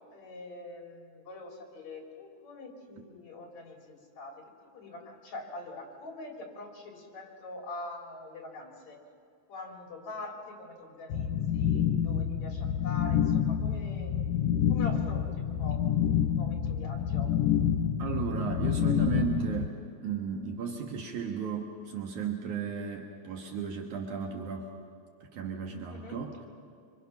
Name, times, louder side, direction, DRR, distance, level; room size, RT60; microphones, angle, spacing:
voice 1, 0.1-4.4 4.7-9.0 9.5-14.2 14.7-15.8 16.3-17.3 25.9-26.3, left 2 dB, 60° left, 0 dB, 4.7 m, -44 dB
sound 1, 11.1-19.7, left 9 dB, 85° left, 2.3 m, -28 dB
voice 2, 18.0-19.8 20.0-24.7 25.2-26.5, right 6 dB, 75° right, 2 dB, 2.8 m, -35 dB
25.5 x 25.5 x 6.0 m, 2.3 s
omnidirectional pair, 3.6 m